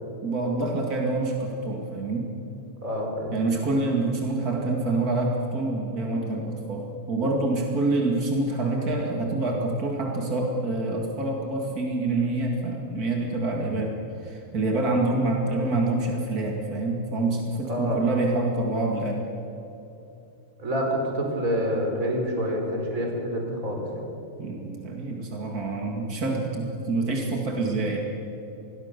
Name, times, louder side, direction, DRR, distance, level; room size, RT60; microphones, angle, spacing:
voice 1, 0.2-2.3 3.3-13.9 14.2-19.3 24.4-28.0, right 2 dB, 50° right, 1 dB, 1.1 m, -26 dB
voice 2, 2.8-3.3 17.6-18.0 20.6-24.0, equal, 15° right, 1 dB, 4.2 m, -27 dB
27.5 x 21.0 x 6.9 m, 2.9 s
omnidirectional pair, 5.7 m